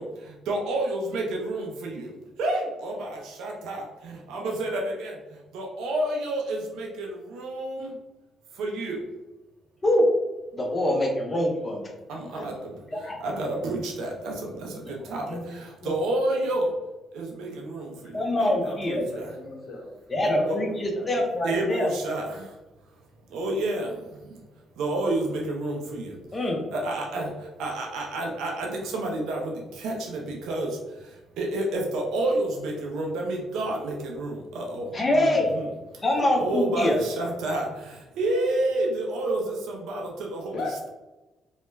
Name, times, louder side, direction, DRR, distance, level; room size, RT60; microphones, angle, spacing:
voice 1, 0.0-2.1 2.4-5.1 5.5-8.0 8.6-9.0 12.1-16.7 17.1-19.4 20.5-20.6 21.4-22.5 23.3-24.4 24.8-35.7 36.4-40.5, right 2 dB, 85° right, 0 dB, 0.4 m, -30 dB
voice 2, 10.5-11.9 12.3-12.4 12.9-13.2 15.3-15.4 15.8-15.9 18.1-19.0 20.1-21.9 26.3-26.6 34.9-35.6 36.0-37.0, left 1 dB, 30° left, 1 dB, 0.6 m, -24 dB
voice 3, 18.6-21.1 21.7-21.8 40.5-40.8, left 2 dB, 60° left, -2 dB, 0.8 m, -38 dB
2.3 x 2.1 x 3.1 m, 1.1 s
cardioid pair, 90°, 0 cm